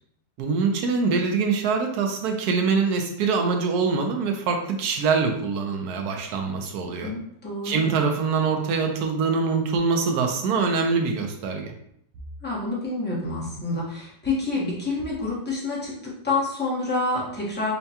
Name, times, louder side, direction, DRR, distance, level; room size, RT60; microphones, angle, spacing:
voice 1, 0.4-7.1 7.6-11.7, right 5 dB, 70° right, 3 dB, 0.9 m, -24 dB
voice 2, 7.0-8.0 12.4-17.7, left 2 dB, 10° left, -5 dB, 0.5 m, -28 dB
5.6 x 2.2 x 2.8 m, 0.71 s
omnidirectional pair, 2.0 m